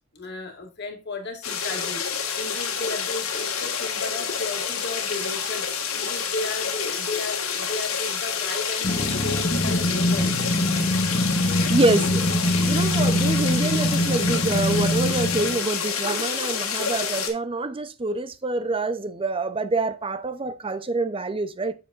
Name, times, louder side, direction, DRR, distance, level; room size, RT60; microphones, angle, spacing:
voice 1, 0.1-10.3, left 3 dB, 50° left, 2.1 m, -34 dB
sound 1, 1.4-17.3, left 6 dB, 90° left, 1.7 m, -28 dB
sound 2, 8.8-15.6, left 1 dB, 35° left, 1.1 m, -24 dB
voice 2, 11.4-12.3 12.7-21.7, right 2 dB, 25° right, 0.6 m, -26 dB
8.1 x 7.0 x 2.5 m
head